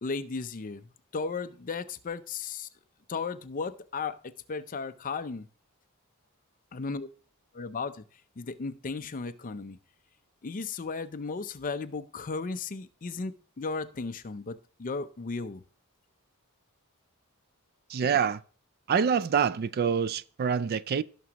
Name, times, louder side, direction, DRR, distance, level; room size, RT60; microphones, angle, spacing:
voice 1, 0.0-2.7 3.1-5.5 6.7-7.1 7.5-8.0 8.4-9.8 10.4-15.6, left 4 dB, 35° left, 0.5 m, -35 dB
voice 2, 17.9-18.4 18.9-21.0, right 7 dB, 45° right, 0.3 m, -26 dB
17.0 x 6.0 x 2.9 m
head